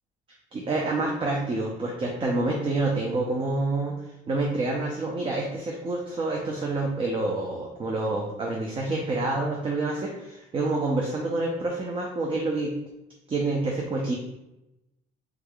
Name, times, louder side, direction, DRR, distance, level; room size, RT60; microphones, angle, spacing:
voice 1, 0.5-3.9 4.3-12.7 13.3-14.1, right 2 dB, 30° right, -1 dB, 0.5 m, -27 dB
3.5 x 3.3 x 2.2 m, 0.93 s
cardioid pair, 110°, 17 cm